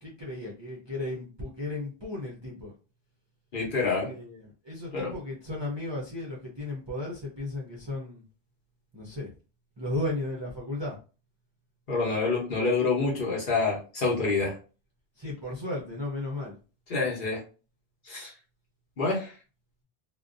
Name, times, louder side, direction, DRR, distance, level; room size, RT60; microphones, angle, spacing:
voice 1, 0.2-2.7 4.1-4.2 4.7-8.2 8.9-9.3 9.8-10.9 15.2-16.5, left 2 dB, 35° right, -4 dB, 0.5 m, -34 dB
voice 2, 3.5-4.1 4.9-5.2 11.9-14.5 16.9-17.4 18.1-18.3 19.0-19.3, left 3 dB, 55° left, -2 dB, 1.0 m, -27 dB
2.5 x 2.1 x 2.4 m, 0.35 s
omnidirectional pair, 1.1 m